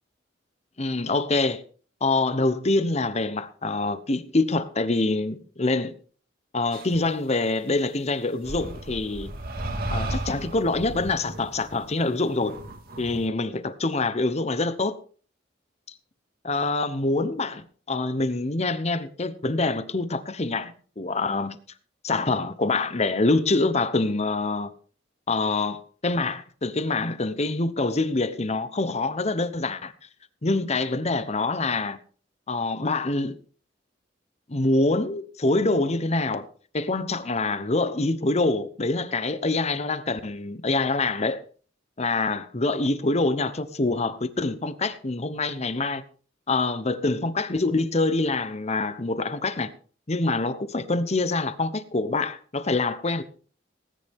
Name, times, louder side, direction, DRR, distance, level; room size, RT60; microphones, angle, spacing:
voice 1, 0.8-1.6 2.0-5.9 6.5-9.3 9.9-12.6 13.0-15.0 16.4-21.6 22.0-24.7 25.3-29.9 30.4-32.0 32.5-33.4 34.5-36.5 36.7-41.4 42.0-46.0 46.5-49.7 50.1-53.2, left 2 dB, 35° left, 1.0 m, -25 dB
sound 1, 6.7-7.0 8.4-13.2, right 1 dB, 55° right, 1.9 m, -34 dB
19.0 x 9.8 x 3.6 m
head